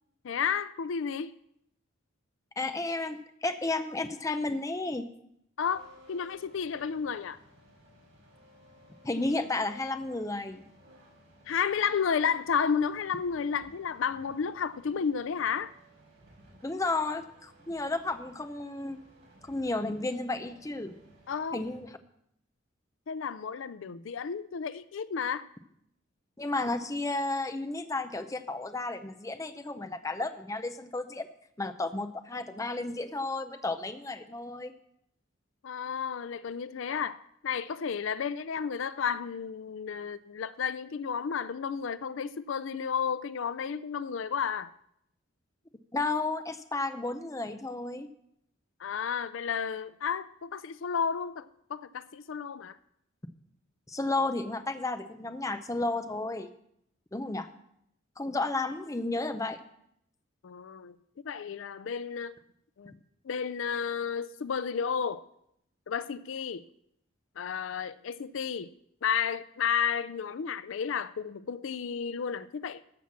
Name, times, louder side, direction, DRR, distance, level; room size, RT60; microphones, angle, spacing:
voice 1, 0.2-1.3 5.6-7.4 11.5-15.7 21.3-21.6 23.1-25.5 35.6-44.7 48.8-52.8 60.4-61.0 61.2-62.4 62.8-62.9 63.2-65.2 65.9-66.7 67.4-68.7 69.0-72.8, left 7 dB, 70° left, 0.4 m, -32 dB
voice 2, 2.6-5.1 9.0-10.7 16.6-19.0 19.4-20.9 21.5-21.9 26.4-31.3 31.6-34.7 45.9-48.1 53.9-56.5 57.1-57.5 58.2-59.6, left 2 dB, 15° left, 0.6 m, -32 dB
sound 1, 5.6-21.8, equal, 45° right, 5.1 m, -58 dB
13.5 x 5.8 x 7.3 m
head